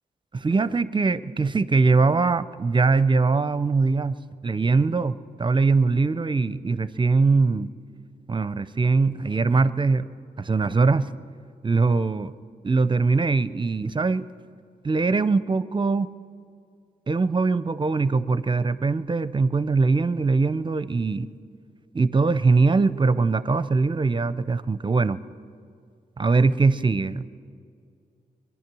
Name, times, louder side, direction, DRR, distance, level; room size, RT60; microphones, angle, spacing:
voice 1, 0.3-7.7 8.3-10.1 10.4-11.1 11.6-12.3 12.6-14.3 14.8-16.1 17.1-21.3 21.9-25.2 26.2-27.2, right 4 dB, 30° right, 15 dB, 0.6 m, -22 dB
21.5 x 11.0 x 6.2 m, 2.3 s
cardioid pair, 50°, 16 cm